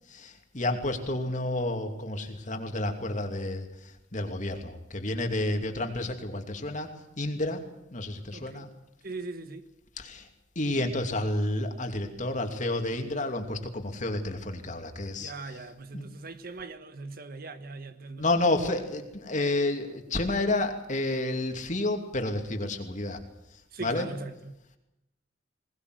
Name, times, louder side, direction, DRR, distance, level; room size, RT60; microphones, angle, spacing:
voice 1, 0.1-3.7 4.1-6.9 7.2-7.6 7.9-8.7 10.0-10.2 10.6-15.5 15.9-16.0 18.2-23.2 23.8-24.1, left 2 dB, 40° left, 2.8 m, -30 dB
voice 2, 8.3-8.7 9.0-9.6 15.2-18.3 23.7-24.8, right 3 dB, 55° right, 1.4 m, -40 dB
21.0 x 20.0 x 7.9 m
head